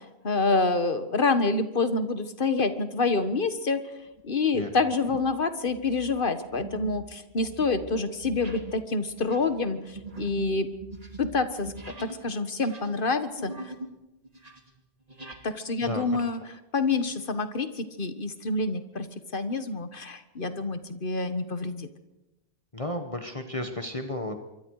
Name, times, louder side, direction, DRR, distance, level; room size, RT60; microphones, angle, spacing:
voice 1, 0.2-3.8 4.2-10.7 11.2-13.5 15.4-16.4 16.7-19.1 19.3-21.9, left 3 dB, 50° left, 10 dB, 1.6 m, -27 dB
sound 1, 3.2-3.6 4.1-4.3 4.9-5.4 5.7-12.2 12.5-14.0 14.2-15.4, right 2 dB, 35° right, 2.6 m, -42 dB
voice 2, 22.7-24.4, left 1 dB, 30° left, 5 dB, 1.6 m, -33 dB
25.5 x 23.5 x 4.9 m, 0.96 s
omnidirectional pair, 1.1 m